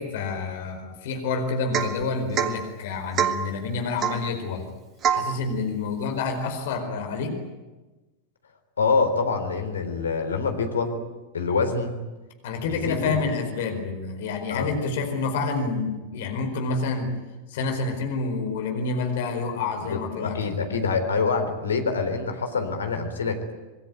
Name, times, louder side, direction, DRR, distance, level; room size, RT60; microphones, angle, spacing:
voice 1, 0.0-4.7 5.1-7.4 12.4-17.1 17.5-20.6, left 4 dB, 55° left, 5 dB, 4.5 m, -28 dB
Domestic sounds home sounds / Chink clink / Drip, 1.7-2.0 2.3-2.6 3.2-3.5 4.0-4.3 5.0-5.3, right 8 dB, 30° right, 1.9 m, -24 dB
voice 2, 8.8-11.0 11.3-11.9 12.6-13.2 14.5-14.7 19.8-23.5, left 4 dB, 70° left, 6 dB, 3.7 m, -26 dB
26.5 x 20.5 x 9.4 m, 1.2 s
figure-of-eight pair, 90°, 0 cm